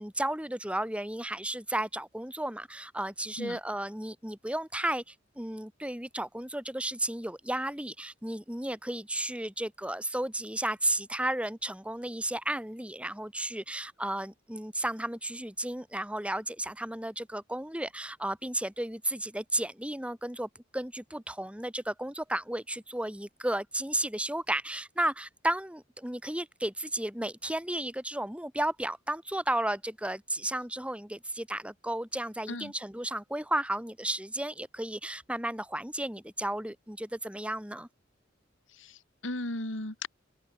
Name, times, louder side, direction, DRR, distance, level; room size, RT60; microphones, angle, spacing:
voice 1, 0.0-37.9, right 1 dB, 5° right, 3.7 m, -33 dB
voice 2, 38.8-40.1, left 2 dB, 85° left, 3.8 m, -36 dB
open air
head